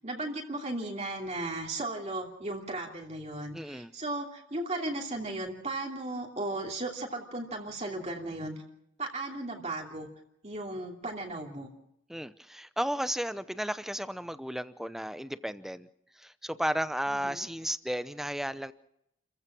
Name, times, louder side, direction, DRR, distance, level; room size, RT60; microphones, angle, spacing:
voice 1, 0.0-8.6 9.0-10.1 10.4-11.7 17.2-17.5, right 2 dB, 30° right, 0 dB, 2.9 m, -36 dB
voice 2, 3.5-3.9 12.1-15.9 16.1-18.7, equal, ahead, 13 dB, 0.7 m, -34 dB
30.0 x 15.0 x 6.1 m, 0.78 s
head